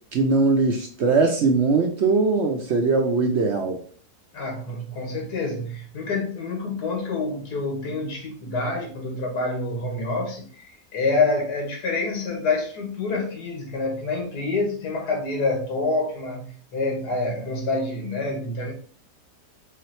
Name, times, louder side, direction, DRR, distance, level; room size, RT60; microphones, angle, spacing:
voice 1, 0.1-3.8, right 3 dB, 65° right, 2 dB, 0.7 m, -21 dB
voice 2, 4.3-18.7, left 3 dB, 75° left, 1 dB, 1.8 m, -27 dB
4.8 x 3.2 x 2.8 m, 0.44 s
omnidirectional pair, 1.7 m